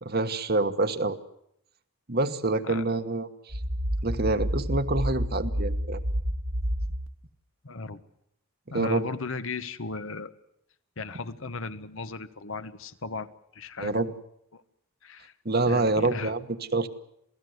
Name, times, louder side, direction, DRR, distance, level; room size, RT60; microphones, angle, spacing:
voice 1, 0.0-1.2 2.1-3.5 4.0-6.0 8.7-9.1 13.8-14.1 15.4-16.5 16.7-16.9, right 2 dB, 45° right, 9 dB, 1.4 m, -26 dB
sound 1, 3.5-7.1, equal, 75° right, 1.7 m, -29 dB
voice 2, 7.6-8.0 8.7-10.3 11.0-14.0 14.5-14.6 15.0-15.3 15.7-16.3, left 3 dB, 65° left, 11 dB, 1.2 m, -36 dB
28.0 x 18.0 x 8.0 m, 0.74 s
head